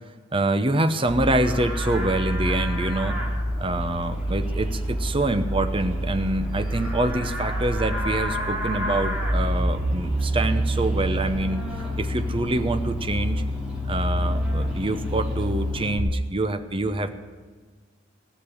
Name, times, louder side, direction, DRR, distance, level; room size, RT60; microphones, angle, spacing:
voice 1, 0.3-3.2 3.6-11.7 12.0-13.4 13.9-17.1, right 1 dB, 25° right, 8 dB, 0.9 m, -26 dB
Livestock farm animals working animals, 1.1-16.0, equal, 5° right, 2.8 m, -27 dB
16.5 x 6.8 x 9.9 m, 1.5 s
head